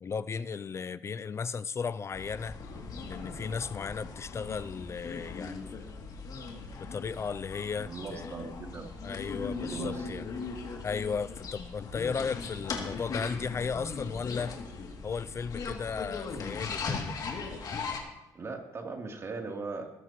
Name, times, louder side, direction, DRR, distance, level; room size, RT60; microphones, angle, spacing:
voice 1, 0.0-2.6 3.0-5.8 6.9-8.5 9.0-10.2 10.8-14.6 15.0-17.2, left 5 dB, 40° left, 0.4 m, -35 dB
sound 1, 2.1-18.0, left 4 dB, 60° left, 2.8 m, -39 dB
voice 2, 7.7-8.9 9.6-10.1 18.3-19.9, right 4 dB, 40° right, 3.3 m, -39 dB
21.0 x 13.0 x 3.1 m
cardioid pair, 90°, 7 cm